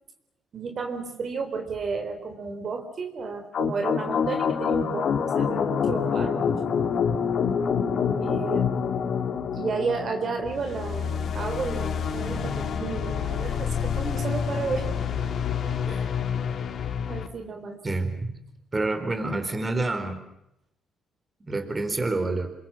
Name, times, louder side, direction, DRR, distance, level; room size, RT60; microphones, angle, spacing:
voice 1, 0.5-6.6 8.2-8.7 9.5-14.9 15.9-16.1 17.1-17.8, right 5 dB, 50° right, 5 dB, 3.9 m, -32 dB
sound 1, 3.5-17.3, left 7 dB, 60° left, 2.8 m, -27 dB
voice 2, 17.8-18.3 18.7-20.2 21.5-22.5, right 2 dB, 25° right, 8 dB, 4.2 m, -27 dB
28.0 x 22.0 x 7.5 m, 0.80 s
cardioid pair, 90°, 0 cm